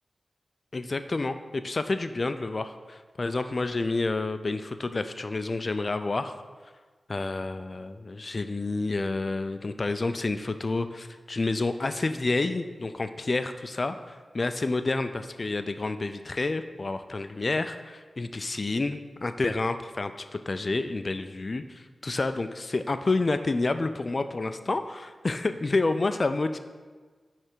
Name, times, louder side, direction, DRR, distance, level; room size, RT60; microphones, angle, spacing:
voice 1, 0.7-6.3 7.1-26.6, left 3 dB, 40° left, 9 dB, 0.3 m, -29 dB
9.5 x 3.3 x 4.5 m, 1.4 s
wide cardioid pair, 100°, 0 cm